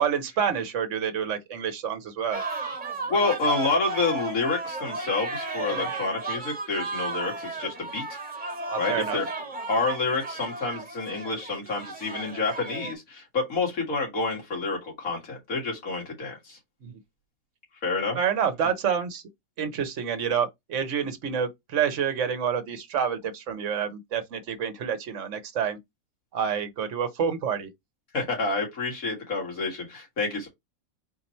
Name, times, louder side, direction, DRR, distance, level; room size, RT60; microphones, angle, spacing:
voice 1, 0.0-2.4 5.7-5.9 8.7-9.2 16.8-16.9 18.1-19.2 19.6-25.8 26.3-27.7, right 7 dB, 65° right, 1.2 m, -28 dB
sound 1, 2.3-12.9, right 3 dB, 35° right, 1.6 m, -34 dB
voice 2, 3.1-8.2 8.8-9.3 9.7-16.6 17.8-18.2 28.1-30.5, left 3 dB, 80° left, 2.3 m, -28 dB
4.2 x 2.8 x 4.3 m
omnidirectional pair, 1.4 m